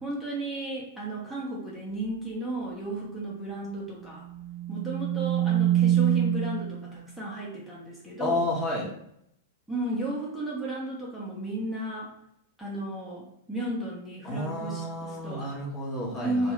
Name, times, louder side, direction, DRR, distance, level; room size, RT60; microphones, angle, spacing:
voice 1, 0.0-4.2 4.7-8.4 9.7-12.1 12.6-15.5 16.2-16.5, right 1 dB, ahead, -7 dB, 0.9 m, -34 dB
sound 1, 4.3-6.9, right 11 dB, 40° right, 0.9 m, -25 dB
voice 2, 8.2-8.9 14.2-16.5, left 1 dB, 25° left, -3 dB, 1.1 m, -31 dB
2.9 x 2.4 x 3.0 m, 0.74 s
figure-of-eight pair, 95°, 0 cm